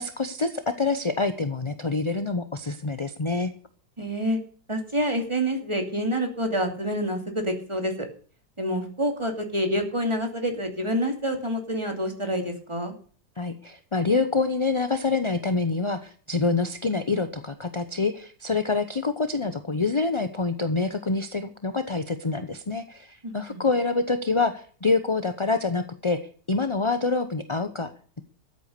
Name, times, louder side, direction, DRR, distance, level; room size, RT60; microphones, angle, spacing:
voice 1, 0.0-3.5 13.4-26.2 26.5-27.9, left 3 dB, 25° left, 10 dB, 0.6 m, -26 dB
voice 2, 4.0-4.4 4.7-8.1 8.6-12.9 23.2-23.6, equal, 15° right, 4 dB, 2.7 m, -27 dB
13.5 x 8.5 x 6.8 m, 0.43 s
omnidirectional pair, 1.8 m